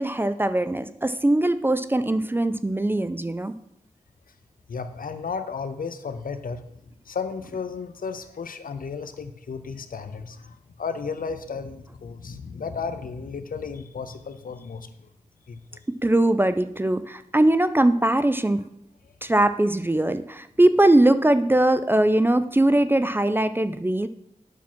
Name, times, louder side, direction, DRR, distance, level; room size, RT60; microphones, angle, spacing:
voice 1, 0.0-3.5 15.9-18.7 19.2-24.1, right 1 dB, 15° right, 12 dB, 0.3 m, -21 dB
voice 2, 4.7-6.6 7.0-15.1 15.5-15.8, left 5 dB, 75° left, 10 dB, 0.6 m, -34 dB
8.4 x 5.9 x 4.3 m, 0.78 s
wide cardioid pair, 100°, 14 cm